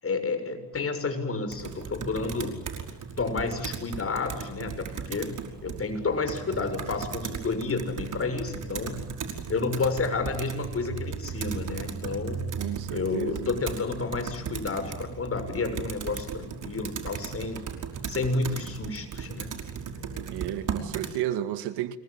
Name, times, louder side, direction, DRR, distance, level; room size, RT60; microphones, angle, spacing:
voice 1, 0.0-2.6 3.2-9.0 9.5-12.5 12.9-17.6 18.1-19.6, left 4 dB, 35° left, 6.9 m, -30 dB
Computer keyboard, 1.5-21.2, right 6 dB, 50° right, 5.4 m, -36 dB
voice 2, 12.6-13.4 20.3-22.0, right 12 dB, 80° right, 2.1 m, -32 dB
28.5 x 23.0 x 9.0 m
supercardioid pair, 85°, 39 cm